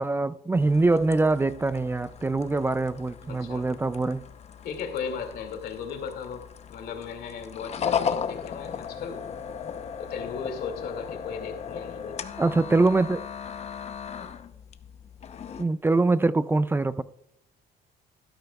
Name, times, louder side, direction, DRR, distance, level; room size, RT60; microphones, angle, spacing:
voice 1, 0.0-4.3 12.4-13.2 15.6-17.0, right 3 dB, 15° right, 0.3 m, -23 dB
sound 1, 0.6-15.7, left 7 dB, 40° left, 0.7 m, -36 dB
voice 2, 3.3-3.7 4.6-9.3 10.0-12.2, left 6 dB, 70° left, 2.2 m, -36 dB
12.5 x 12.0 x 2.3 m
cardioid pair, 110°, 17 cm